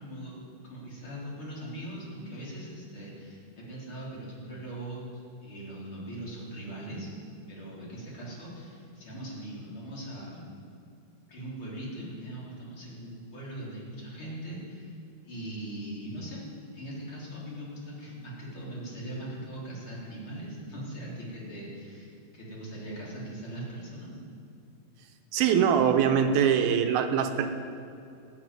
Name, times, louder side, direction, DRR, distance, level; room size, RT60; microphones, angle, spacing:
voice 1, 0.0-7.2 7.5-10.5 11.3-15.0 15.2-16.4 16.7-24.2, right 1 dB, 30° left, -5 dB, 4.3 m, -40 dB
voice 2, 25.3-27.5, right 8 dB, 75° right, 6 dB, 2.6 m, -23 dB
14.5 x 9.1 x 9.5 m, 2.5 s
omnidirectional pair, 4.7 m